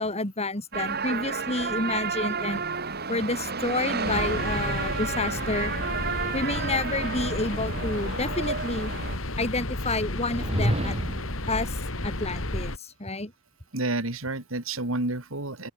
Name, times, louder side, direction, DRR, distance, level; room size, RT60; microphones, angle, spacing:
voice 1, 0.0-2.6 3.1-5.7 6.3-8.9 9.4-11.0 11.5-11.8 12.0-13.3, left 2 dB, 30° left, 4.6 m, -29 dB
sound 1, 0.7-9.2, right 5 dB, 50° right, 4.2 m, -31 dB
sound 2, 4.0-12.8, left 2 dB, 80° left, 4.0 m, -32 dB
sound 3, 10.2-11.4, right 1 dB, 30° right, 2.4 m, -28 dB
voice 2, 13.7-15.7, right 2 dB, 85° right, 3.2 m, -30 dB
open air
head